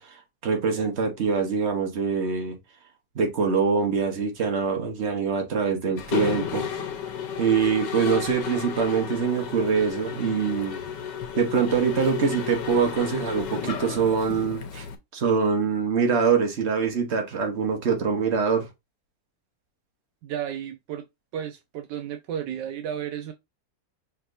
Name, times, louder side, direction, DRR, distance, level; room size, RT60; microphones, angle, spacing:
voice 1, 0.0-2.6 3.1-6.7 7.4-10.8 11.4-14.8 15.1-18.7, right 5 dB, 40° right, 1.4 m, -24 dB
Mechanisms, 6.0-14.9, left 8 dB, 75° left, 1.5 m, -33 dB
voice 2, 20.2-21.1 21.3-23.3, right 9 dB, 75° right, 1.2 m, -33 dB
5.6 x 3.4 x 2.6 m
omnidirectional pair, 2.0 m